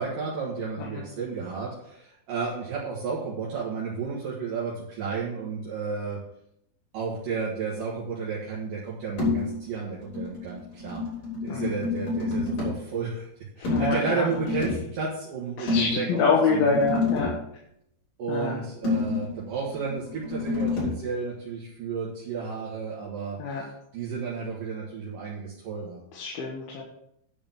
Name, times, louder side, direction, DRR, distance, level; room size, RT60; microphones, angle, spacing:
voice 1, 0.0-6.2 6.9-11.0 11.4-13.3 13.6-16.8 18.2-23.4 23.9-26.0, right 5 dB, 65° right, -5 dB, 3.2 m, -32 dB
sound 1, 9.2-9.6 9.9-12.8 13.6-14.9 15.7-17.4 18.8-21.0, left 3 dB, 60° left, 6.8 m, -29 dB
voice 2, 13.6-14.3 15.6-17.3 18.3-18.6 23.4-23.7 26.1-26.8, left 4 dB, 75° left, -3 dB, 3.3 m, -26 dB
11.0 x 5.1 x 7.3 m, 0.75 s
omnidirectional pair, 4.5 m